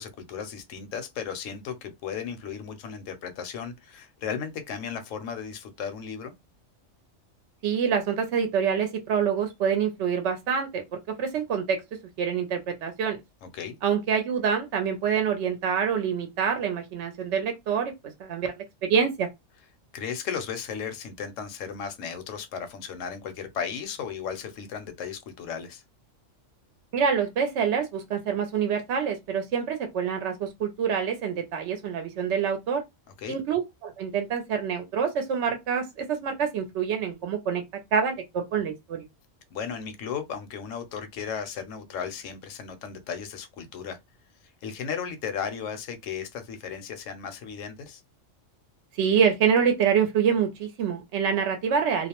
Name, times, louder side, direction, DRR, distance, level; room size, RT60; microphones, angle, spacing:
voice 1, 0.0-6.3 13.4-13.8 19.9-25.8 33.2-33.4 39.5-44.0 44.6-48.0, left 7 dB, 75° left, 0.9 m, -35 dB
voice 2, 7.6-10.8 11.2-11.8 12.2-13.2 13.8-17.9 18.2-18.5 18.8-19.3 26.9-32.8 33.3-37.6 37.9-39.0 49.0-52.1, right 7 dB, 65° right, 0.8 m, -26 dB
2.4 x 2.0 x 2.8 m
omnidirectional pair, 1.3 m